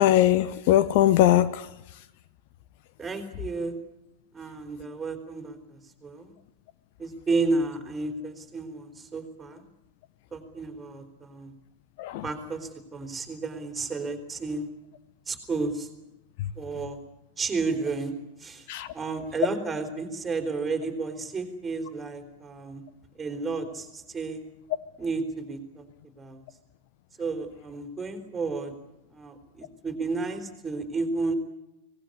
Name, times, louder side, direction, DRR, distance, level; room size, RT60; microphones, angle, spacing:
voice 1, 0.0-1.6 12.0-12.2 18.7-18.9, left 13 dB, 50° left, 16 dB, 0.9 m, -20 dB
voice 2, 3.0-3.7 4.3-6.3 7.0-9.6 10.3-11.5 12.2-14.7 15.3-15.9 16.6-17.0 17.4-18.1 18.4-18.6 18.9-22.8 23.2-24.4 25.0-25.8 26.2-26.4 27.2-28.7 29.1-31.3, right 3 dB, 15° right, 5 dB, 4.0 m, -32 dB
24.5 x 19.0 x 9.9 m, 0.91 s
figure-of-eight pair, 90°, 0 cm